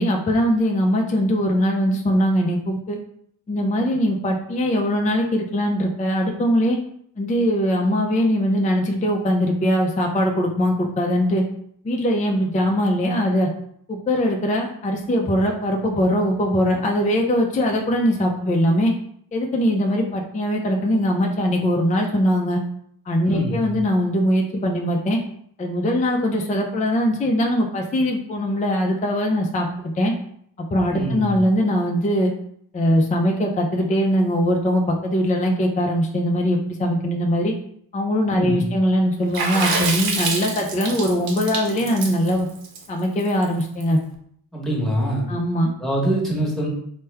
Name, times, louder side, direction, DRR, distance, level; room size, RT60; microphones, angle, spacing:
voice 1, 0.0-3.0 3.5-6.8 7.2-11.4 11.8-13.5 13.9-18.9 19.3-22.6 23.1-25.2 25.6-30.1 30.6-32.3 32.7-37.5 37.9-42.5 42.9-44.0 45.3-45.7, equal, 20° left, 1 dB, 0.4 m, -21 dB
voice 2, 23.2-23.7 30.9-31.3 38.3-38.7 44.5-45.3 45.8-46.7, right 1 dB, ahead, -3 dB, 1.1 m, -24 dB
Water / Splash splatter, 39.3-43.8, right 4 dB, 55° right, 0.8 m, -26 dB
3.1 x 2.2 x 3.3 m, 0.67 s
cardioid pair, 65°, 43 cm